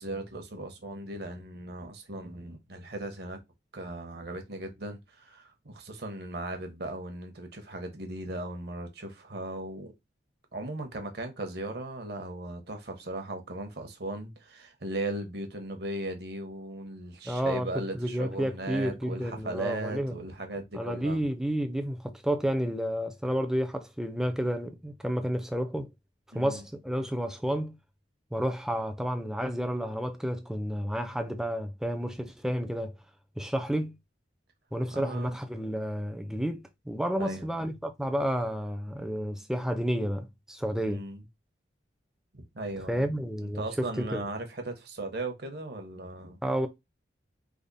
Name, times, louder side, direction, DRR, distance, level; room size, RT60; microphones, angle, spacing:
voice 1, 0.0-3.4 3.7-9.9 10.5-21.2 26.3-26.6 34.9-35.4 37.2-37.7 40.8-41.2 42.3-43.1 43.5-46.4, right 2 dB, 55° right, 0.8 m, -37 dB
voice 2, 17.3-20.2 20.7-25.9 26.3-27.8 28.3-33.0 33.4-33.9 34.7-41.1 42.9-44.2 46.4-46.7, equal, 5° right, 0.4 m, -31 dB
3.5 x 2.0 x 3.8 m
head